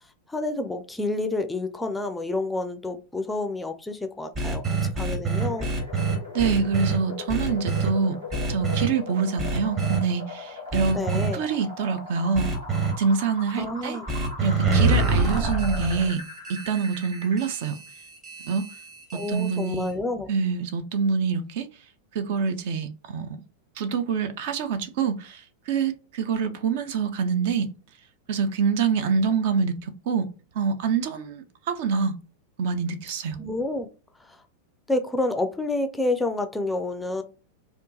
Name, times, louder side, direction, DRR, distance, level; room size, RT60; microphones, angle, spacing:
voice 1, 0.3-5.7 10.9-11.4 13.6-14.1 19.1-20.3 33.4-33.9 34.2-34.4 34.9-37.2, left 2 dB, 10° left, 0.4 m, -29 dB
sound 1, 4.3-7.0 7.3-7.9 8.3-8.9 9.4-10.0 10.7-11.3 12.3-12.9 14.1-19.9, right 3 dB, 30° right, 1.1 m, -26 dB
sound 2, 5.4-17.4, left 3 dB, 70° right, 1.6 m, -40 dB
voice 2, 6.3-8.2 8.5-12.5 13.0-14.0 14.4-16.2 16.5-17.8 18.4-18.7 19.3-19.9 20.3-21.7 22.1-23.4 23.8-27.7 28.3-30.3 30.5-32.1 32.6-33.4, right 5 dB, 50° right, 0.5 m, -26 dB
3.6 x 2.4 x 2.8 m
figure-of-eight pair, 90°, 0 cm